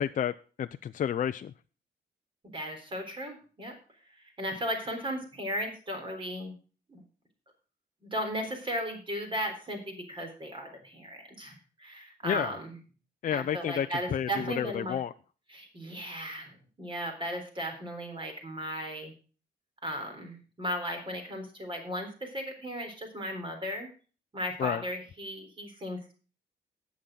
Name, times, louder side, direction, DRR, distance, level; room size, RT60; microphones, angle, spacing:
voice 1, 0.0-1.5 12.2-12.5 13.2-15.1 24.6-24.8, left 9 dB, 50° left, 0.5 m, -31 dB
voice 2, 2.5-3.7 4.2-6.5 6.9-7.0 8.0-12.7 13.3-15.0 15.5-19.1 19.8-23.9 24.3-26.1, equal, 30° right, 3.9 m, -36 dB
18.5 x 7.2 x 3.8 m
wide cardioid pair, 150°, 18 cm